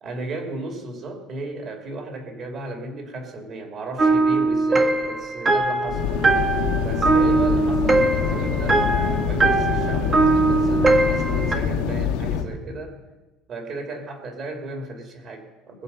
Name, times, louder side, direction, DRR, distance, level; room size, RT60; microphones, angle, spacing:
voice 1, 0.0-6.0 6.8-13.0 13.5-15.8, right 2 dB, 45° right, 3 dB, 2.6 m, -34 dB
sound 1, 4.0-11.6, right 3 dB, 25° right, 1.2 m, -21 dB
sound 2, 5.9-12.4, left 7 dB, 85° left, 1.8 m, -25 dB
21.0 x 7.4 x 5.5 m, 1.1 s
cardioid pair, 125°, 0 cm